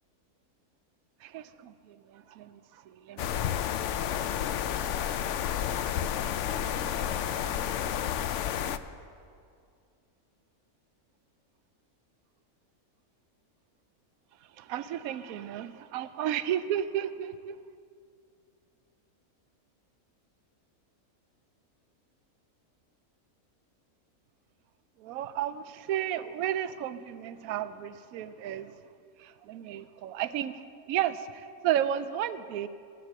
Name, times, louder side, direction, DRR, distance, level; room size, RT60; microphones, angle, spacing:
voice 1, 1.2-3.8 6.8-7.6 14.6-17.5 25.0-28.8 29.2-32.7, right 11 dB, 75° right, 13 dB, 1.0 m, -33 dB
sound 1, 3.2-8.8, left 9 dB, 65° left, 0.8 m, -30 dB
16.0 x 8.2 x 7.5 m, 2.3 s
omnidirectional pair, 1.6 m